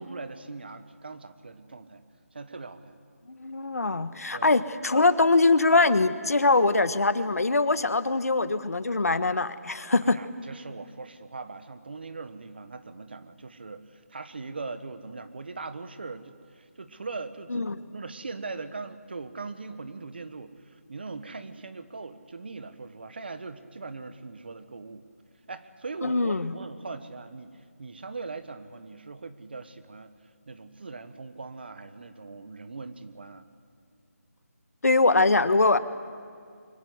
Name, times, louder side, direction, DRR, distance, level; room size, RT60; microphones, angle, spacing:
voice 1, 0.0-2.0 2.3-3.0 4.3-4.6 10.0-25.1 25.5-30.1 30.5-33.4, right 3 dB, 40° right, 11 dB, 1.3 m, -40 dB
voice 2, 3.3-10.2 17.5-17.7 26.0-26.5 34.8-35.8, left 3 dB, 70° left, 13 dB, 1.4 m, -23 dB
24.5 x 24.0 x 8.0 m, 2.2 s
figure-of-eight pair, 175°, 8 cm